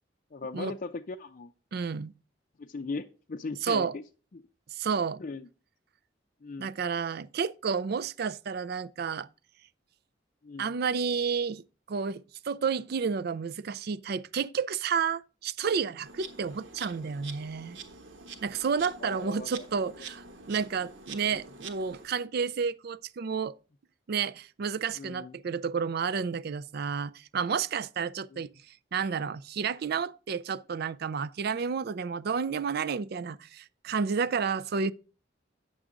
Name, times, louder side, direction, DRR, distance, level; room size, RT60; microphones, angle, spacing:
voice 1, 0.3-1.5 2.6-4.0 4.3-4.4 5.2-5.5 6.4-6.7 10.4-10.7 19.0-19.7 20.0-20.1 21.3-21.4 25.0-25.4 28.3-28.5, left 3 dB, 45° left, 0.5 m, -39 dB
voice 2, 1.7-2.1 3.6-3.9 4.7-5.2 6.6-9.3 10.6-17.8 18.4-23.6 24.1-34.9, right 6 dB, 55° right, 0.4 m, -31 dB
Insect, 16.0-22.1, right 5 dB, 75° right, 1.3 m, -46 dB
9.1 x 7.3 x 3.7 m
head